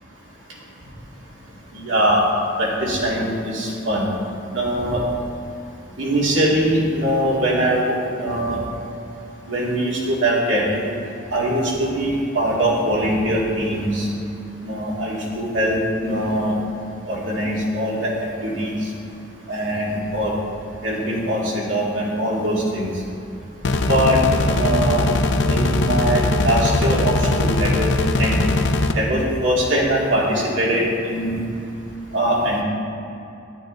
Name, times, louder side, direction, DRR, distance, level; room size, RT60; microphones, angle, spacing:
voice 1, 1.7-2.2 2.6-4.0 4.5-5.0 6.0-8.6 9.5-10.9 11.3-14.1 14.6-16.5 17.1-18.1 18.4-18.8 19.5-20.3 20.8-22.9 23.9-24.2 24.5-25.1 25.4-28.4 28.9-31.4 32.1-32.6, right 1 dB, 75° right, -5 dB, 2.5 m, -22 dB
sound 1, 23.6-28.9, left 2 dB, 65° left, 0.6 m, -20 dB
11.0 x 9.2 x 3.9 m, 2.8 s
head